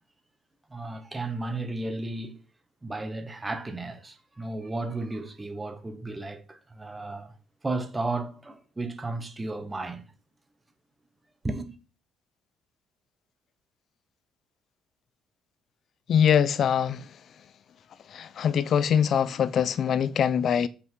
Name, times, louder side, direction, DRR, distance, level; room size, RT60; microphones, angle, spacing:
voice 1, 0.7-2.4 2.8-7.3 7.6-10.1 11.4-11.7, right 2 dB, 15° right, 1.3 m, -34 dB
voice 2, 16.1-17.0 18.1-20.7, left 8 dB, 50° left, 0.7 m, -23 dB
8.2 x 5.7 x 4.7 m
cardioid pair, 120°, 0 cm